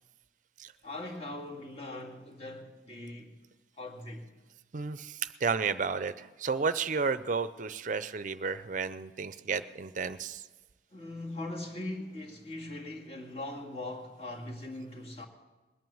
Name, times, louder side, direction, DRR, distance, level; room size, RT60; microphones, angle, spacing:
voice 1, 0.8-3.4 3.8-4.3 10.9-15.3, left 2 dB, 35° left, 2.2 m, -40 dB
voice 2, 4.7-10.4, right 5 dB, 45° right, 0.5 m, -32 dB
21.0 x 9.2 x 7.2 m
head